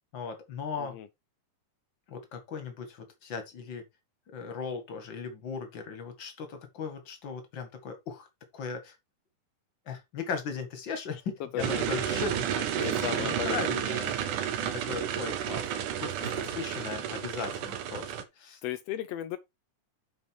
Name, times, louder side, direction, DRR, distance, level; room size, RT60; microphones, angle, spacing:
voice 1, 0.1-1.0 2.1-3.8 4.3-8.3 8.5-8.9 9.9-14.1 14.6-18.6, left 5 dB, 40° left, 2.1 m, -38 dB
voice 2, 11.5-11.9 12.8-13.8 16.2-16.3 18.6-19.4, left 12 dB, 80° left, 1.4 m, -35 dB
sound 1, 11.6-18.2, right 10 dB, 80° right, 2.6 m, -31 dB
7.7 x 5.6 x 4.5 m
omnidirectional pair, 3.6 m